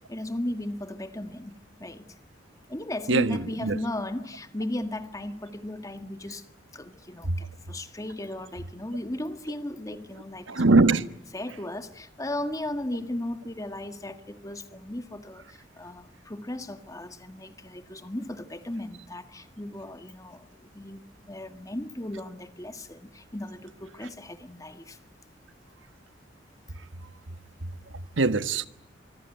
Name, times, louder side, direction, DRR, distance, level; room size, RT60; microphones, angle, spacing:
voice 1, 0.1-2.2 2.7-6.4 6.7-10.6 11.3-25.0, left 1 dB, 20° left, 1.7 m, -36 dB
voice 2, 10.5-11.0 28.2-28.7, right 3 dB, 85° right, 1.4 m, -21 dB
24.5 x 24.5 x 9.2 m
head